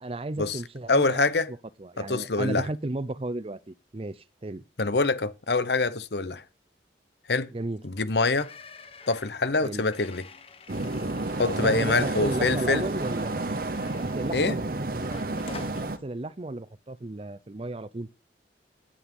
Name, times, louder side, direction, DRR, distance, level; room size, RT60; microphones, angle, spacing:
voice 1, 0.0-1.3 1.8-4.6 7.5-7.8 9.6-9.8 11.4-13.5 14.0-14.7 14.9-15.4 15.7-18.1, right 2 dB, 30° right, 0.6 m, -34 dB
voice 2, 0.9-1.5 2.0-2.7 4.8-6.4 7.3-7.5 7.8-8.5 9.1-10.2 11.4-12.8 14.3-14.6, left 3 dB, 70° left, 1.0 m, -25 dB
sound 1, 8.4-14.6 15.0-15.9, left 4 dB, 35° left, 1.0 m, -48 dB
sound 2, 10.7-16.0, right 2 dB, 55° right, 1.0 m, -31 dB
10.0 x 8.8 x 5.4 m
head